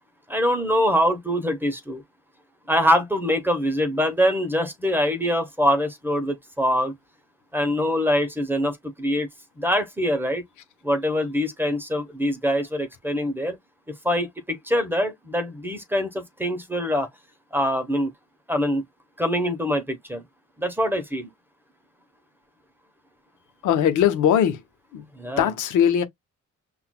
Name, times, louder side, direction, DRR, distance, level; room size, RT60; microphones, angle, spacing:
voice 1, 0.3-2.0 2.7-6.9 7.5-9.3 9.6-10.4 10.8-13.6 13.9-17.1 17.5-18.1 18.5-18.8 19.2-20.2 20.6-21.3 25.1-25.5, equal, 5° right, 0.9 m, -24 dB
voice 2, 23.6-24.6 24.9-25.1 25.4-26.0, left 9 dB, 80° left, 0.9 m, -20 dB
5.7 x 2.4 x 2.2 m
cardioid pair, 90°, 30 cm